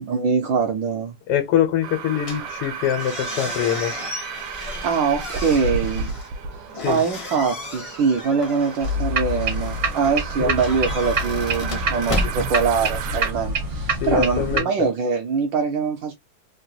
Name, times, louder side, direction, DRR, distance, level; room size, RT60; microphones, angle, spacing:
voice 1, 0.1-1.2 4.8-6.1 6.8-16.1, right 5 dB, 75° right, 1.2 m, -23 dB
voice 2, 1.3-3.9 6.7-7.0 10.4-10.6 13.9-14.9, left 10 dB, 85° left, 1.6 m, -24 dB
sound 1, 1.8-13.3, right 5 dB, 90° right, 1.5 m, -33 dB
sound 2, 2.2-13.3, left 2 dB, 60° left, 0.3 m, -34 dB
sound 3, 8.8-14.6, right 2 dB, 50° right, 0.7 m, -26 dB
3.8 x 2.2 x 2.6 m
omnidirectional pair, 2.4 m